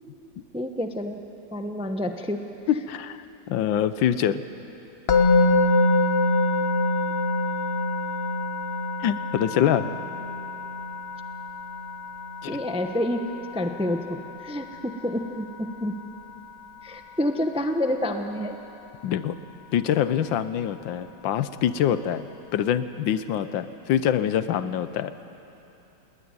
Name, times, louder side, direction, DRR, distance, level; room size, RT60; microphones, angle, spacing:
voice 1, 0.5-1.2 1.5-2.4 12.5-13.2 13.5-15.9 16.8-18.6, left 1 dB, 5° right, 5 dB, 0.5 m, -28 dB
voice 2, 2.7-3.2 3.5-4.4 9.0-9.9 12.4-12.6 19.0-19.4 19.7-25.1, left 10 dB, 80° left, 13 dB, 1.5 m, -25 dB
Musical instrument, 5.1-16.2, left 2 dB, 40° left, 1.1 m, -26 dB
20.0 x 18.5 x 9.7 m, 3.0 s
omnidirectional pair, 2.1 m